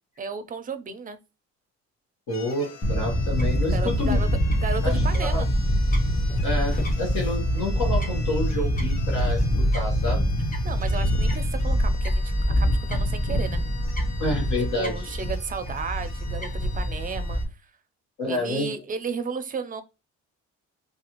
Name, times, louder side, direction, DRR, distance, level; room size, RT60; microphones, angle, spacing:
voice 1, 0.2-1.2 3.7-4.3 4.6-5.5 10.6-13.6 14.8-17.4 18.3-19.8, right 5 dB, 30° right, 0.4 m, -33 dB
voice 2, 2.3-4.2 4.8-5.4 6.4-9.5 9.7-10.2 14.2-15.1 18.2-18.7, left 1 dB, 85° left, 1.2 m, -29 dB
sound 1, 2.3-17.4, left 5 dB, 60° left, 0.7 m, -45 dB
Fowl / Bird, 2.8-17.4, equal, 30° left, 0.7 m, -24 dB
2.4 x 2.3 x 2.9 m
cardioid pair, 90°, 30 cm